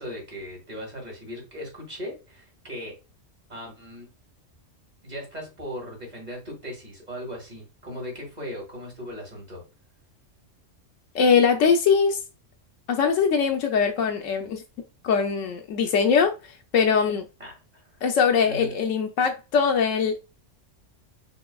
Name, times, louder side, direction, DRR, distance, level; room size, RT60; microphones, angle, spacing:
voice 1, 0.0-3.0 3.5-4.1 5.0-9.6 17.4-18.0 18.4-18.7, equal, 35° right, 2.1 m, -38 dB
voice 2, 11.1-12.2 12.9-14.6 15.0-17.3 18.0-20.2, left 6 dB, 85° left, 1.0 m, -22 dB
6.0 x 3.1 x 2.3 m
omnidirectional pair, 1.3 m